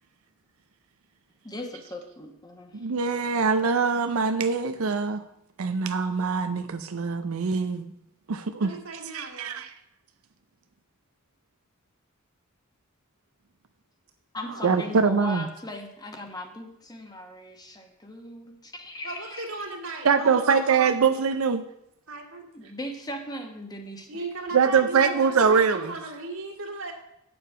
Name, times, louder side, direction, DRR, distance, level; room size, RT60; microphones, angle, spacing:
voice 1, 1.4-2.8 14.3-19.6 22.5-24.2, left 1 dB, 20° left, 4 dB, 1.1 m, -38 dB
voice 2, 2.7-5.2 5.6-7.9 8.3-8.7 9.1-9.7 14.6-15.4 20.0-21.6 24.5-25.9, right 5 dB, 85° right, 8 dB, 0.5 m, -23 dB
voice 3, 8.5-9.6 14.4-15.0 19.0-20.8 22.1-22.4 24.1-26.9, right 3 dB, 65° right, 0 dB, 2.1 m, -37 dB
9.3 x 7.0 x 5.5 m, 0.79 s
head